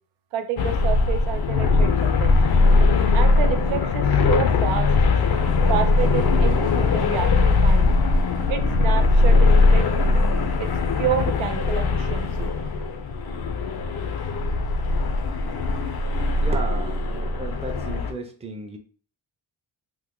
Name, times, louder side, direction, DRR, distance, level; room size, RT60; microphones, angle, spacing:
voice 1, 0.3-2.4 3.1-4.9 5.7-8.0 8.5-10.2 10.6-12.5, right 8 dB, 90° right, 7 dB, 0.6 m, -29 dB
sound 1, 0.6-18.1, left 3 dB, 55° left, 0.5 m, -20 dB
voice 2, 16.4-18.8, right 2 dB, 15° right, 4 dB, 0.4 m, -34 dB
3.1 x 2.1 x 3.6 m, 0.42 s
wide cardioid pair, 115°, 46 cm